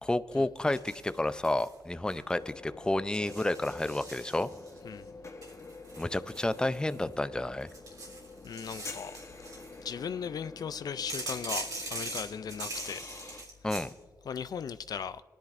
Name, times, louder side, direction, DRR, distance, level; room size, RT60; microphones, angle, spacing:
voice 1, 0.0-4.5 6.0-7.7 13.6-13.9, left 1 dB, 10° left, 0.5 m, -30 dB
sound 1, 0.7-1.7 2.1-2.5 3.1-4.8 5.4-7.1 7.6-9.8 11.1-13.9, right 2 dB, 65° right, 3.3 m, -41 dB
sound 2, 2.3-13.4, left 3 dB, 45° left, 1.0 m, -48 dB
voice 2, 8.4-9.2 9.6-13.2 14.2-15.2, left 7 dB, 70° left, 0.3 m, -38 dB
21.0 x 10.5 x 2.5 m
cardioid pair, 60°, 7 cm